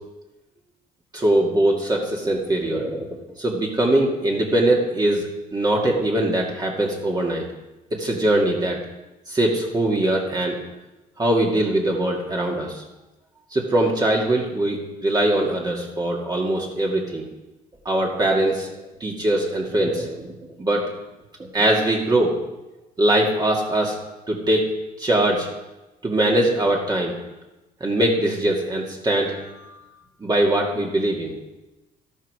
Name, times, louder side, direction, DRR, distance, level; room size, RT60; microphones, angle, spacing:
voice 1, 1.1-7.4 7.9-8.8 9.3-10.6 11.2-12.8 13.5-17.2 17.9-18.7 19.0-20.3 20.6-20.8 21.5-22.3 23.0-24.0 24.3-24.6 25.0-25.5 26.0-27.2 27.8-29.5 30.2-31.3, right 1 dB, 25° right, -2 dB, 2.2 m, -21 dB
13.0 x 12.5 x 4.9 m, 1.0 s
cardioid pair, 110°, 17 cm